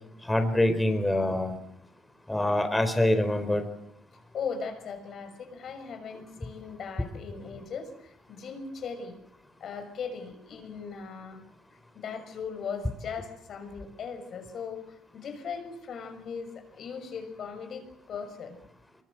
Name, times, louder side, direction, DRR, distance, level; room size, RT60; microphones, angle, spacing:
voice 1, 0.2-1.6 2.3-3.6, left 1 dB, 10° left, 7 dB, 4.4 m, -25 dB
voice 2, 4.3-9.2 9.6-11.4 11.9-18.5, left 6 dB, 60° left, 6 dB, 6.4 m, -38 dB
24.5 x 23.0 x 7.9 m, 0.77 s
supercardioid pair, 65°, 0 cm